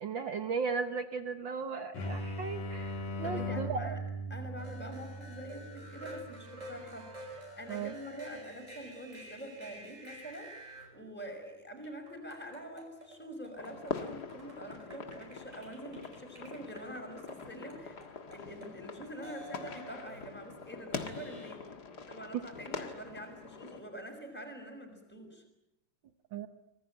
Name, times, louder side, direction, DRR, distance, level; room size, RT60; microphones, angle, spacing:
voice 1, 0.0-3.9 7.7-7.9 26.3-26.5, right 5 dB, 75° right, 8 dB, 1.1 m, -36 dB
sound 1, 1.9-7.4, equal, 80° left, 4.4 m, -40 dB
voice 2, 3.2-4.0 4.3-18.0 18.3-21.6 22.1-25.4, equal, 5° left, 3 dB, 5.8 m, -45 dB
sound 2, 4.6-10.9 11.8-18.7 19.2-20.3 20.9-21.5, equal, 20° right, 5.5 m, -50 dB
sound 3, 13.5-23.8, left 5 dB, 40° left, 1.7 m, -44 dB
26.0 x 20.0 x 9.1 m, 0.90 s
omnidirectional pair, 3.7 m